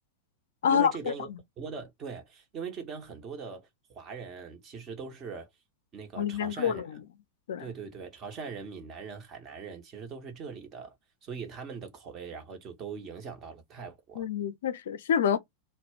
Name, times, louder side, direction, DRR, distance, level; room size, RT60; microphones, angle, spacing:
voice 1, 0.7-1.3 1.6-3.7 3.9-5.5 5.9-6.9 7.6-10.9 11.2-14.3, right 5 dB, 30° right, 0.9 m, -41 dB
voice 2, 6.2-6.8 7.5-7.6 14.2-15.4, left 8 dB, 60° left, 0.4 m, -27 dB
2.2 x 2.1 x 3.4 m
figure-of-eight pair, 90°, 0 cm